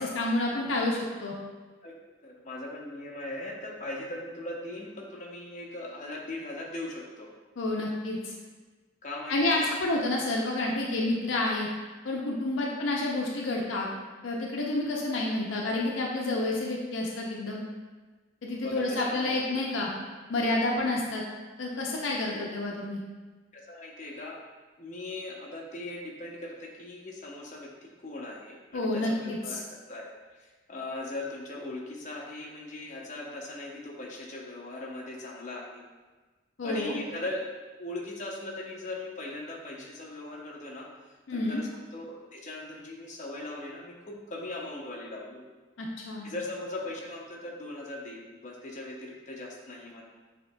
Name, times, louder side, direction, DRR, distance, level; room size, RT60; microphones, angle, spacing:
voice 1, 0.0-1.3 7.6-8.3 9.3-11.7 12.0-13.9 14.2-17.6 18.4-19.9 20.3-21.2 21.6-23.0 28.7-29.6 36.6-37.0 41.3-41.6 45.8-46.3, left 2 dB, 85° left, -2 dB, 0.5 m, -29 dB
voice 2, 2.2-7.3 9.0-9.6 18.6-19.6 22.3-22.6 23.5-24.4 24.8-30.1 30.4-35.8 36.6-37.5 37.8-40.9 41.3-45.4 46.2-50.0, left 2 dB, 40° left, -2 dB, 0.7 m, -39 dB
6.8 x 2.8 x 2.2 m, 1.3 s
head